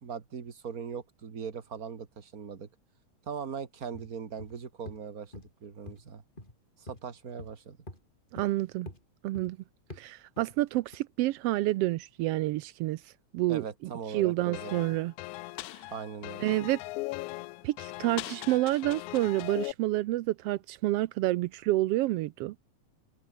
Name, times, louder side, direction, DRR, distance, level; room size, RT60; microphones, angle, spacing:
voice 1, 0.0-2.7 3.3-5.3 5.6-6.2 6.8-7.8 13.5-14.8 15.9-16.5, right 6 dB, 35° right, 2.1 m, -40 dB
sound 1, 3.9-4.1 4.4-4.6 4.9-5.0 5.3-5.5 5.9-6.0 6.4-6.6 6.9-7.0 7.4-7.5 7.9-8.0 8.4-8.5 8.9-9.0 9.3-9.5 9.9-10.0 10.4-10.5 10.9-11.0, left 1 dB, 15° left, 6.0 m, -45 dB
voice 2, 8.3-8.9 9.2-9.6 10.0-13.6 14.1-15.1 16.4-16.8 17.6-22.5, right 17 dB, 85° right, 1.3 m, -29 dB
sound 2, 14.5-19.7, left 21 dB, 85° left, 2.0 m, -39 dB
omnidirectional pair, 3.4 m